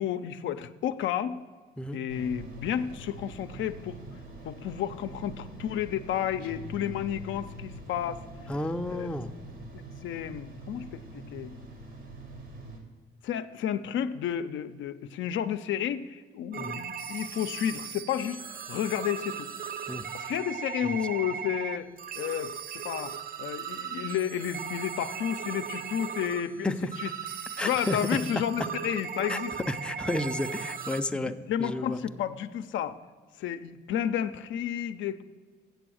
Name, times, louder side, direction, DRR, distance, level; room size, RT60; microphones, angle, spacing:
voice 1, 0.0-1.4 1.9-4.0 4.4-8.2 8.9-9.1 9.7-11.6 13.2-18.4 18.7-19.5 20.1-21.9 22.2-27.1 27.6-29.5 31.1-33.0 33.4-35.2, left 9 dB, 75° left, 10 dB, 0.5 m, -32 dB
sound 1, 2.1-12.8, right 2 dB, 80° right, 2.2 m, -45 dB
sound 2, 6.4-8.1, left 8 dB, 45° left, 0.8 m, -45 dB
voice 2, 8.5-9.3 16.6-16.8 19.9-20.1 20.8-21.0 26.6-26.9 27.6-28.0 29.3-29.4 29.7-32.0, left 1 dB, 5° left, 7 dB, 0.4 m, -32 dB
sound 3, 16.5-31.0, right 7 dB, 45° right, 0.6 m, -37 dB
8.0 x 6.9 x 6.2 m, 1.5 s
cardioid pair, 90°, 20 cm